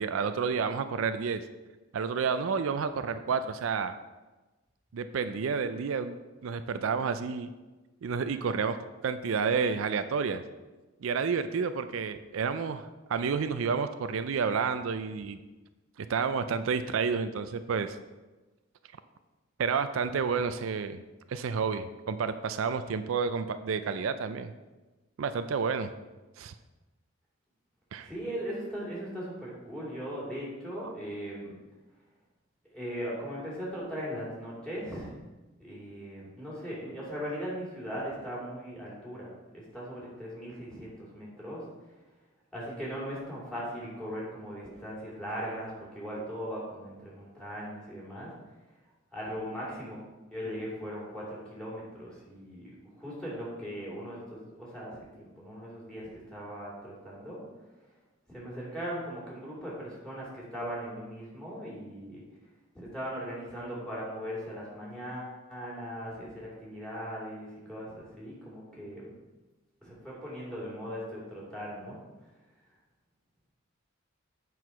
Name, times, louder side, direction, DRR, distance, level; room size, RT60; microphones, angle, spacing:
voice 1, 0.0-1.4 1.9-3.9 4.9-6.2 6.4-7.5 8.0-8.8 9.0-10.4 11.0-15.4 16.0-18.0 19.6-21.0 21.3-24.5 25.2-25.9 26.4-26.5 27.9-28.1, right 5 dB, 75° right, 10 dB, 0.4 m, -30 dB
voice 2, 28.0-31.6 32.7-35.1 35.6-41.6 42.5-48.3 49.1-50.0 50.3-57.4 58.3-62.2 62.7-69.1 69.8-72.0, equal, 5° left, -6 dB, 3.0 m, -39 dB
8.0 x 4.7 x 5.8 m, 1.2 s
head